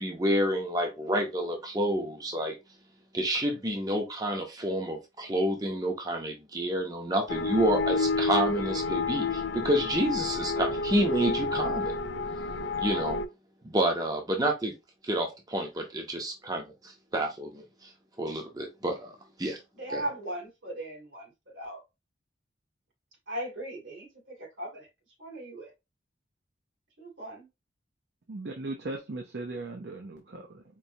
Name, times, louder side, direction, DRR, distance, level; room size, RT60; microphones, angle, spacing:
voice 1, 0.0-2.6 3.1-11.9 12.8-13.2 13.6-14.7 15.0-17.9 18.2-19.1 19.4-19.6 19.9-20.0, right 1 dB, 20° right, 0.6 m, -29 dB
sound 1, 7.3-13.3, left 3 dB, 75° left, 0.4 m, -30 dB
voice 2, 19.7-21.8 23.3-24.9 25.2-25.7 27.0-27.5, right 1 dB, 90° right, 2.3 m, -38 dB
voice 3, 28.3-30.6, right 2 dB, 65° right, 0.6 m, -38 dB
4.5 x 2.6 x 2.7 m
head